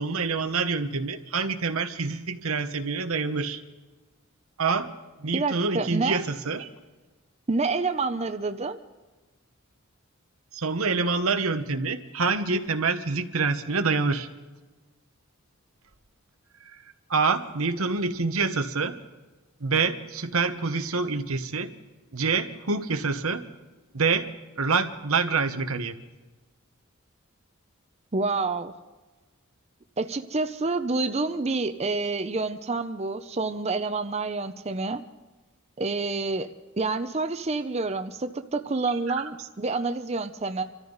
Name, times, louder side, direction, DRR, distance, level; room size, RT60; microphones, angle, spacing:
voice 1, 0.0-3.6 4.6-4.9 5.2-6.7 10.5-14.3 16.6-16.8 17.1-19.0 19.6-21.7 22.1-23.4 23.9-24.3 24.6-25.9 38.8-39.3, right 4 dB, 90° right, 8 dB, 1.2 m, -26 dB
voice 2, 5.3-6.2 7.5-8.8 28.1-28.7 30.0-35.0 35.8-36.5 36.8-40.6, right 3 dB, 30° right, 8 dB, 0.6 m, -28 dB
26.0 x 14.0 x 4.0 m, 1.2 s
head